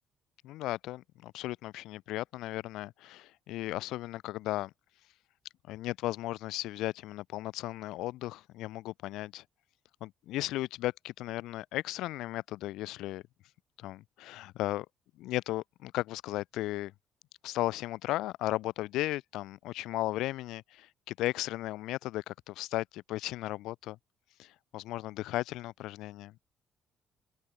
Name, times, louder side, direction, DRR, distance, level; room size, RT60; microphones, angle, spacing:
voice 1, 0.4-4.7 5.7-9.4 10.0-13.2 13.8-14.9 15.2-16.9 17.4-24.0 24.4-26.4, left 16 dB, 65° left, 0.7 m, -35 dB
open air
figure-of-eight pair, 45°, 0 cm